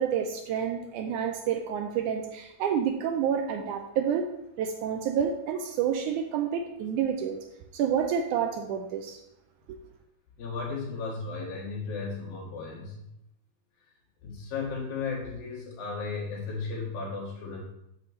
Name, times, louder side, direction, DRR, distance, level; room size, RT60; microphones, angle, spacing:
voice 1, 0.0-4.3 4.6-7.4 7.7-9.2 9.7-9.8, right 8 dB, 80° right, 5 dB, 1.9 m, -29 dB
voice 2, 10.4-13.0 14.2-17.6, left 4 dB, 85° left, -3 dB, 3.7 m, -35 dB
8.0 x 7.4 x 3.1 m, 0.83 s
omnidirectional pair, 3.9 m